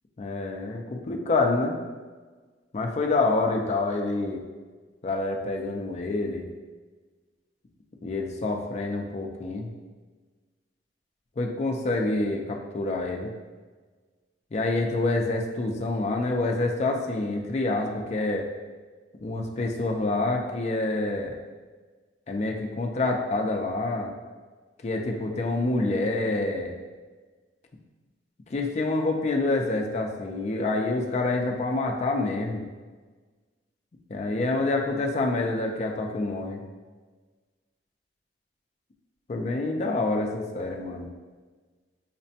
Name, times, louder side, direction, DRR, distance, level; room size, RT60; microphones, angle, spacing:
voice 1, 0.2-1.8 2.7-4.4 5.0-6.4 8.0-9.7 11.4-13.3 14.5-18.5 19.2-21.4 22.3-24.1 24.8-26.7 28.5-32.6 34.1-36.6 39.3-41.1, left 2 dB, 40° left, 2 dB, 0.4 m, -27 dB
5.7 x 2.1 x 2.7 m, 1.4 s
head